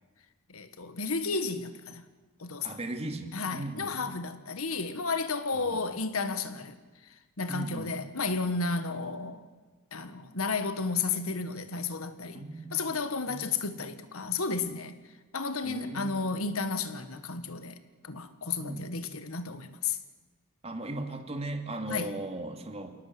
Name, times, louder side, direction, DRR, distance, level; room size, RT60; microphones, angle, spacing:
voice 1, 0.5-2.0 2.4-2.8 3.3-6.8 7.4-9.4 9.9-12.4 12.7-15.0 15.3-20.0 21.9-22.2, left 4 dB, 80° left, 1.6 m, -32 dB
voice 2, 2.6-4.0 5.5-5.8 7.5-7.9 12.3-12.7 13.3-13.4 15.6-16.1 18.6-18.9 20.6-22.9, right 2 dB, 30° right, 2.4 m, -37 dB
28.0 x 19.0 x 7.7 m
head